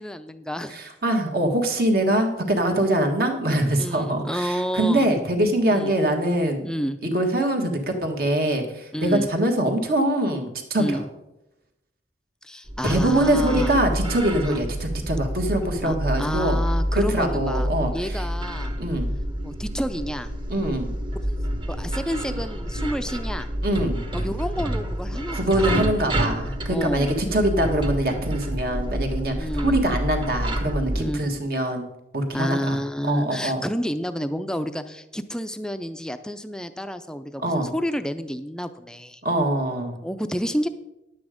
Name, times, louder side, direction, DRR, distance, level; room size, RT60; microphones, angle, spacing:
voice 1, 0.0-0.8 3.8-5.1 5.7-5.9 6.6-7.0 8.9-9.3 10.8-11.1 12.4-13.8 14.4-14.6 15.8-17.7 17.9-18.7 19.4-20.3 21.3-21.4 21.7-23.5 24.1-25.7 26.7-27.1 29.4-29.8 31.0-31.2 32.3-39.2 40.0-40.7, equal, 5° left, 10 dB, 0.4 m, -29 dB
voice 2, 0.7-6.7 7.0-11.0 12.8-16.6 16.9-18.2 18.8-19.1 20.5-20.9 23.6-24.0 25.3-31.9 32.1-32.8 33.0-33.6 37.4-37.7 39.2-39.9, right 1 dB, 55° right, 3 dB, 1.6 m, -23 dB
sound 1, 12.7-31.0, equal, 25° right, 1.1 m, -28 dB
10.5 x 8.4 x 5.0 m, 0.93 s
head